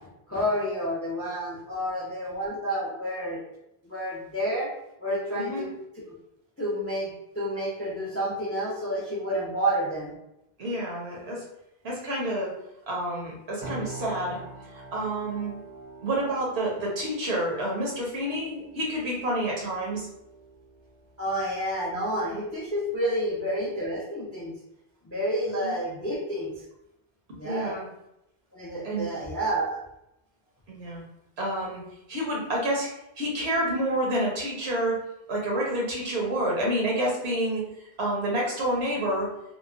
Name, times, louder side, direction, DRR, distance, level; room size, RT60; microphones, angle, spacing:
voice 1, 0.3-3.4 3.8-4.7 5.0-5.7 6.6-10.1 21.2-24.5 25.0-26.5 27.3-27.8 28.5-29.8, equal, 20° left, -5 dB, 0.4 m, -29 dB
voice 2, 5.3-5.7 10.6-11.4 11.8-12.5 12.9-14.4 14.7-15.5 16.0-20.1 25.6-25.7 27.4-27.8 28.8-29.1 30.7-31.0 31.4-31.8 32.1-32.9 33.2-35.0 35.3-39.3, right 1 dB, 85° right, -3 dB, 1.1 m, -28 dB
sound 1, 13.6-23.3, right 3 dB, 60° right, 0.7 m, -46 dB
2.9 x 2.1 x 2.4 m, 0.84 s
omnidirectional pair, 1.0 m